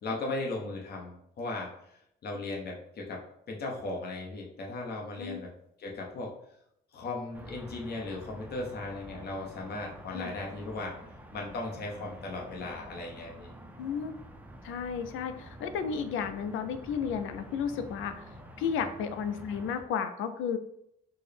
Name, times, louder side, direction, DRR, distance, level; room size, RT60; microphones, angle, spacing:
voice 1, 0.0-3.2 3.5-5.5 5.8-6.3 6.9-11.0 11.3-13.5 18.8-18.9, left 2 dB, 55° left, -1 dB, 0.9 m, -37 dB
sound 1, 7.3-19.8, right 1 dB, 10° right, 0.5 m, -48 dB
voice 2, 13.8-14.1 14.6-18.1 18.6-20.6, left 7 dB, 85° left, 9 dB, 0.4 m, -33 dB
4.3 x 2.1 x 3.3 m, 0.76 s
cardioid pair, 90°, 20 cm